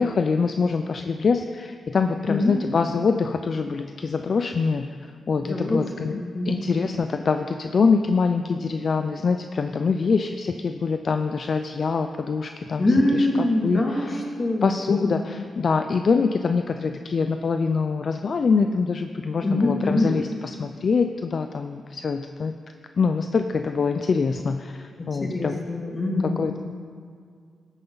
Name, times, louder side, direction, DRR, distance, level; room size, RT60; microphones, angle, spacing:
voice 1, 0.0-6.2 6.5-12.8 13.1-14.2 14.6-22.6 23.0-25.6 26.4-26.6, left 5 dB, 55° left, 7 dB, 0.4 m, -24 dB
voice 2, 2.3-2.6 5.4-6.7 12.8-15.4 19.4-20.1 25.0-26.5, left 2 dB, 30° left, -1 dB, 2.4 m, -24 dB
13.5 x 9.0 x 4.0 m, 2.1 s
cardioid pair, 85°, 0 cm